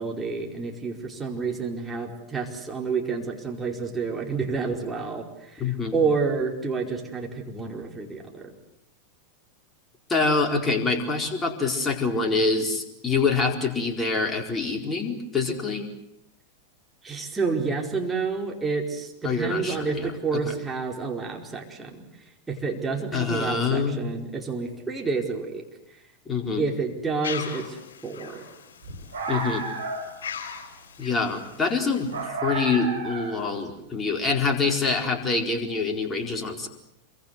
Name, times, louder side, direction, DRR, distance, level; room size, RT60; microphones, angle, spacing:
voice 1, 0.0-8.5 17.0-22.0 22.5-26.0 26.6-28.4, right 4 dB, 15° right, 1 dB, 4.9 m, -29 dB
voice 2, 5.6-5.9 10.1-15.9 19.2-20.1 20.5-20.6 23.1-24.1 26.3-26.6 29.3-29.6 31.0-36.7, left 4 dB, 15° left, 3 dB, 4.5 m, -25 dB
sound 1, 27.2-32.3, left 7 dB, 60° left, 5.0 m, -40 dB
sound 2, 28.8-30.2 32.1-33.5, right 3 dB, 70° right, 5.7 m, -32 dB
27.5 x 24.0 x 8.1 m, 0.79 s
figure-of-eight pair, 90°, 0 cm